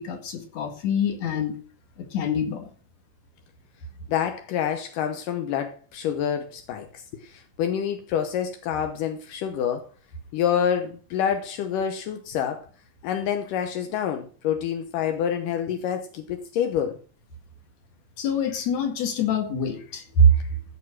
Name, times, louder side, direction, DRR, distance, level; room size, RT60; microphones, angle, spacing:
voice 1, 0.0-1.6 2.0-2.7 18.2-20.6, equal, 55° left, 3.0 m, -24 dB
voice 2, 4.1-9.9 10.3-12.7 13.0-17.0, left 8 dB, 80° left, 2.6 m, -27 dB
15.0 x 6.2 x 6.1 m
omnidirectional pair, 3.9 m